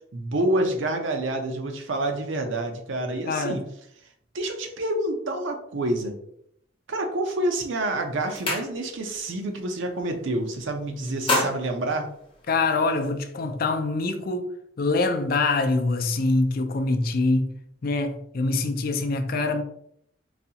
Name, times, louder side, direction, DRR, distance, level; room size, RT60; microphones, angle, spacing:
voice 1, 0.1-3.6 4.3-6.1 6.9-12.1, right 1 dB, 80° right, 0.6 m, -28 dB
voice 2, 3.3-3.6 12.5-14.5 14.8-17.5 17.8-19.6, left 3 dB, 50° left, 0.4 m, -24 dB
sound 1, 7.5-7.7 8.0-9.2 9.5-9.8 10.1-10.7 11.0-12.9, left 1 dB, 25° left, 0.8 m, -30 dB
4.0 x 2.3 x 2.8 m
head